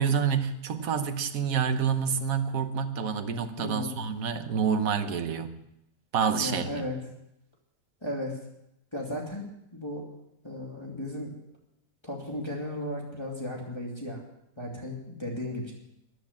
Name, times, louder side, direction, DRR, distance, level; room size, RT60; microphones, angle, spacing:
voice 1, 0.0-5.5 6.1-6.7, right 7 dB, 60° right, 8 dB, 1.5 m, -28 dB
voice 2, 3.6-4.0 6.4-7.0 8.0-8.4 8.9-10.1 10.4-11.3 12.0-14.2 14.6-15.7, left 1 dB, 15° left, -2 dB, 2.5 m, -35 dB
14.0 x 10.5 x 7.2 m, 0.82 s
omnidirectional pair, 1.8 m